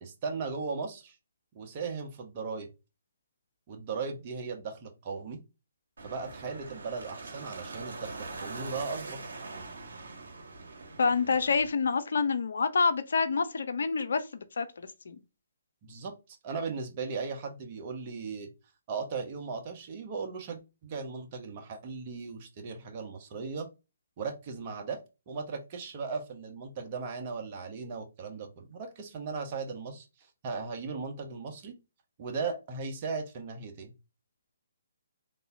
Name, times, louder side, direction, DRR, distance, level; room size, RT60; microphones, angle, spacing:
voice 1, 0.0-1.2 1.5-2.7 3.7-5.4 6.0-9.3 15.8-18.5 18.9-23.7 24.2-25.0 25.3-30.1 30.4-31.8 32.2-33.9, right 4 dB, 35° right, 0.9 m, -37 dB
sound 1, 6.0-11.7, right 3 dB, 70° right, 1.0 m, -43 dB
voice 2, 11.0-15.2, left 5 dB, 65° left, 0.5 m, -28 dB
3.5 x 2.7 x 2.6 m
figure-of-eight pair, 140°, 0 cm